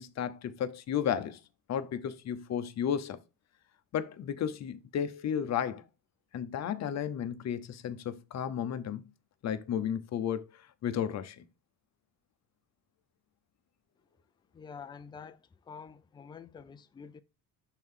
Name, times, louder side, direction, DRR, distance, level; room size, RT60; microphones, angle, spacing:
voice 1, 0.0-1.4 1.7-3.2 3.9-5.8 6.3-9.0 9.4-10.4 10.8-11.4, left 9 dB, 40° left, 0.8 m, -33 dB
voice 2, 14.5-17.2, left 6 dB, 10° left, 0.3 m, -48 dB
6.3 x 4.4 x 3.7 m
cardioid pair, 145°, 40 cm